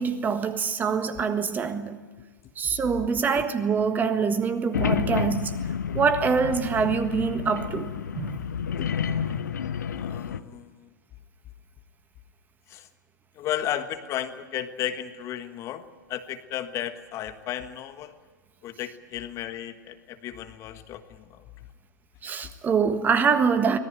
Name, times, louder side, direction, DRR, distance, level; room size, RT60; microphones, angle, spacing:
voice 1, 0.0-2.0 2.6-5.6 5.9-8.4 9.0-9.4 22.2-23.8, right 6 dB, 15° right, 1.5 m, -25 dB
sound 1, 4.7-10.4, left 8 dB, 65° left, 1.0 m, -30 dB
voice 2, 9.9-10.7 12.7-12.8 13.4-15.8 16.1-18.1 18.6-21.2, left 11 dB, 30° left, 1.4 m, -34 dB
25.0 x 19.0 x 9.0 m
figure-of-eight pair, 100°, 10 cm